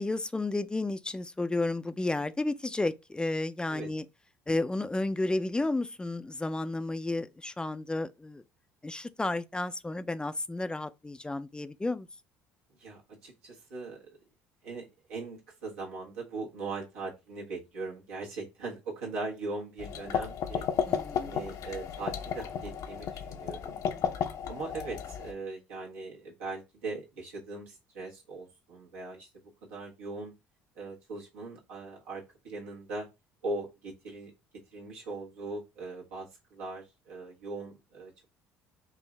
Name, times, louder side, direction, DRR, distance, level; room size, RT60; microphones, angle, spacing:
voice 1, 0.0-4.0 4.5-8.4 8.8-12.1 20.9-21.4, left 2 dB, 15° left, 0.4 m, -32 dB
voice 2, 12.8-14.2 14.6-20.7 21.2-23.8 24.5-29.3 29.7-30.3 30.8-33.1 33.4-34.3 34.7-38.2, right 3 dB, 90° right, 1.4 m, -40 dB
sound 1, 19.8-25.3, left 8 dB, 60° left, 0.6 m, -33 dB
4.6 x 2.5 x 3.2 m
hypercardioid pair, 70°, 6 cm